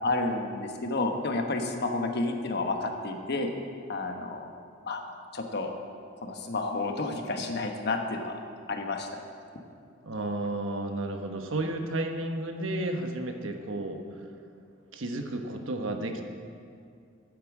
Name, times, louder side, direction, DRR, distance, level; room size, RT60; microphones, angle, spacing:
voice 1, 0.0-3.5 3.9-4.4 4.9-5.0 5.3-5.7 6.2-8.3 8.7-9.1, left 2 dB, 55° left, 4 dB, 1.2 m, -30 dB
voice 2, 10.0-14.0 14.9-16.2, right 2 dB, 80° right, 4 dB, 1.1 m, -32 dB
9.5 x 8.6 x 7.3 m, 2.3 s
head